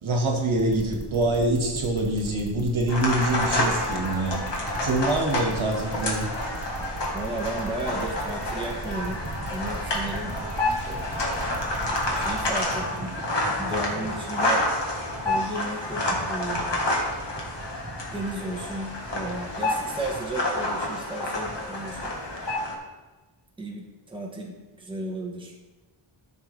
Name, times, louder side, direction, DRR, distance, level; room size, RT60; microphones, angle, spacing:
voice 1, 0.0-4.4 4.8-6.3, right 2 dB, 70° right, 1 dB, 1.8 m, -25 dB
sound 1, 0.6-12.6, right 3 dB, 45° right, 1.9 m, -37 dB
sound 2, 2.9-22.7, left 1 dB, 55° left, 1.7 m, -29 dB
Wind, 4.1-22.5, right 2 dB, 25° right, 0.8 m, -43 dB
voice 2, 7.1-9.2 9.5-10.3 10.8-11.2 12.1-13.1 13.6-14.7 15.2-16.9 18.1-22.1 23.6-25.5, right 1 dB, 10° right, -2 dB, 1.2 m, -34 dB
13.0 x 6.0 x 3.4 m, 1.2 s
wide cardioid pair, 165°, 50 cm